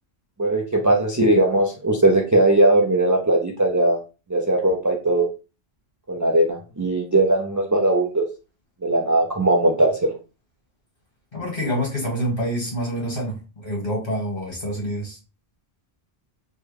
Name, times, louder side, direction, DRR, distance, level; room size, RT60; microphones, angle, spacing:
voice 1, 0.4-4.0 4.3-5.3 6.1-8.2 8.8-10.1, right 1 dB, 30° right, 0 dB, 0.4 m, -19 dB
voice 2, 11.3-13.4 13.6-15.2, equal, 60° left, -3 dB, 1.9 m, -26 dB
3.3 x 2.2 x 3.3 m, 0.31 s
omnidirectional pair, 1.0 m